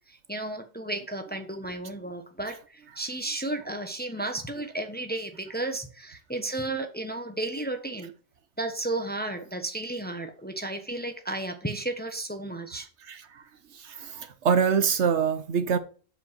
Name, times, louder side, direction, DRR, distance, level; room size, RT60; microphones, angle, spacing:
voice 1, 0.1-8.1 8.6-12.9, right 2 dB, 10° left, 0.9 m, -33 dB
voice 2, 13.8-15.8, right 6 dB, 65° right, 1.1 m, -24 dB
7.6 x 5.1 x 6.0 m
omnidirectional pair, 1.3 m